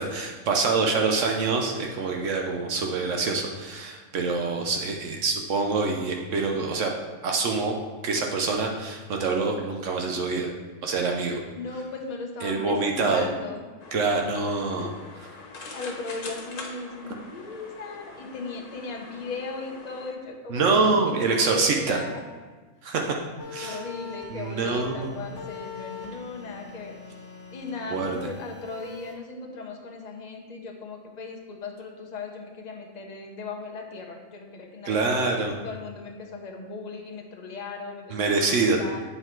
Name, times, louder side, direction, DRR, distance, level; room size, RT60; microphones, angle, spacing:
voice 1, 0.0-6.9 7.2-7.8 8.0-10.5 10.8-11.4 12.4-13.2 13.9-14.9 20.5-22.0 22.8-23.1 23.5-23.8 24.3-25.1 27.9-28.2 34.8-35.5 38.1-38.8, right 4 dB, 75° right, 1 dB, 1.1 m, -25 dB
voice 2, 11.5-13.7 14.8-22.2 23.6-26.9 27.5-39.0, left 3 dB, 40° left, 1 dB, 0.8 m, -37 dB
sound 1, 13.8-20.1, left 3 dB, 85° left, 1.4 m, -43 dB
sound 2, 23.4-29.1, left 5 dB, 65° left, 1.8 m, -42 dB
8.0 x 4.0 x 4.4 m, 1.3 s
omnidirectional pair, 1.3 m